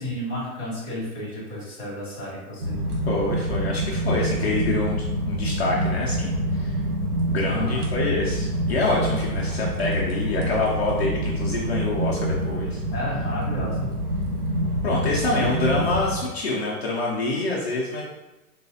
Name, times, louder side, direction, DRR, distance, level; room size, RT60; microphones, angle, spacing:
voice 1, 0.0-2.9 7.4-7.9 12.9-13.9 15.4-15.6, left 1 dB, 5° right, -16 dB, 0.7 m, -31 dB
sound 1, 2.6-16.2, right 1 dB, 85° right, 1.1 m, -26 dB
voice 2, 3.1-6.8 7.3-12.8 14.8-18.0, left 2 dB, 45° left, -4 dB, 0.5 m, -26 dB
3.9 x 2.3 x 2.6 m, 1.0 s
hypercardioid pair, 175°, 45 cm